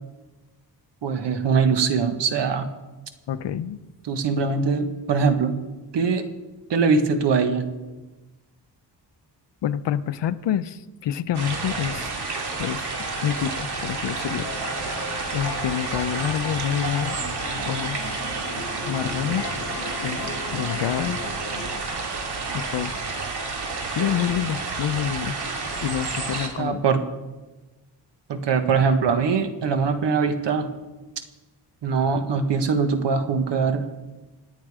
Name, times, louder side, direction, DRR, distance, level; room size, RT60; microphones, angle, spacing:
voice 1, 1.0-2.7 4.0-5.6 5.9-6.3 6.7-7.7 26.6-27.1 28.3-30.7 31.8-33.9, right 5 dB, 85° right, 8 dB, 1.6 m, -22 dB
voice 2, 3.3-3.8 9.6-12.1 12.6-12.9 13.2-14.5 15.3-17.2 17.7-18.1 18.8-19.5 20.0-21.2 22.5-23.0 23.9-25.4 25.8-26.8, left 10 dB, 80° left, 13 dB, 0.8 m, -27 dB
sound 1, 11.3-26.5, right 3 dB, 65° right, 2.7 m, -30 dB
Wind instrument woodwind instrument, 12.9-18.0, left 2 dB, 25° left, 1.0 m, -42 dB
sound 2, 14.2-21.7, left 3 dB, 60° left, 2.6 m, -36 dB
27.0 x 9.2 x 4.9 m, 1.1 s
wide cardioid pair, 135°, 42 cm